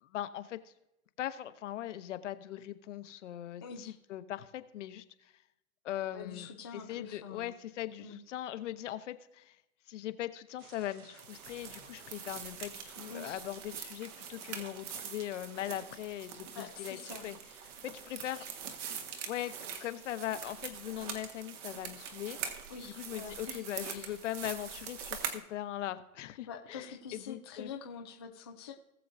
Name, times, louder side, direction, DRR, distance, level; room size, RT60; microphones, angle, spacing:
voice 1, 0.0-0.7 1.2-5.3 5.8-9.6 9.9-17.0 17.2-17.4 17.8-18.4 19.3-22.4 22.8-27.7, left 12 dB, 55° left, 11 dB, 0.9 m, -40 dB
voice 2, 3.6-4.0 6.1-7.5 8.0-8.2 13.1-13.4 16.6-17.2 22.7-24.2 26.5-28.7, left 6 dB, 20° left, 1 dB, 0.3 m, -46 dB
sound 1, 10.6-22.9, right 8 dB, 80° right, 1.1 m, -57 dB
sound 2, 11.2-25.4, right 7 dB, 55° right, 1.6 m, -44 dB
19.0 x 7.0 x 2.7 m, 0.88 s
hypercardioid pair, 150°, 43 cm